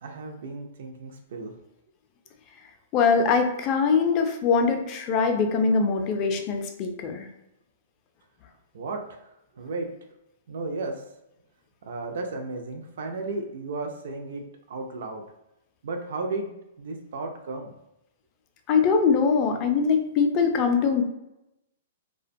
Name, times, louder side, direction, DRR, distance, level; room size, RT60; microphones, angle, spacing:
voice 1, 0.0-1.5 8.7-9.2 9.6-9.9 10.5-11.0 11.8-14.4 14.7-15.2 15.8-16.5 16.8-17.7, right 3 dB, 70° right, 4 dB, 0.4 m, -34 dB
voice 2, 2.9-7.3 18.7-21.0, left 5 dB, 30° left, 5 dB, 0.3 m, -22 dB
2.4 x 2.1 x 2.6 m, 0.88 s
hypercardioid pair, 145°, 0 cm